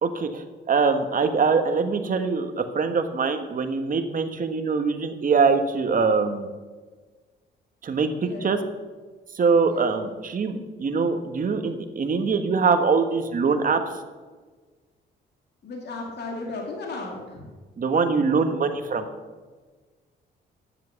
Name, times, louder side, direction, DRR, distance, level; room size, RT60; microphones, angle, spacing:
voice 1, 0.0-6.5 7.8-8.6 9.3-13.8 17.8-19.0, right 5 dB, 45° right, 7 dB, 1.4 m, -23 dB
voice 2, 9.7-10.2 15.6-17.5, left 3 dB, 60° left, 0 dB, 2.6 m, -35 dB
10.5 x 7.6 x 7.1 m, 1.4 s
cardioid pair, 90°, 20 cm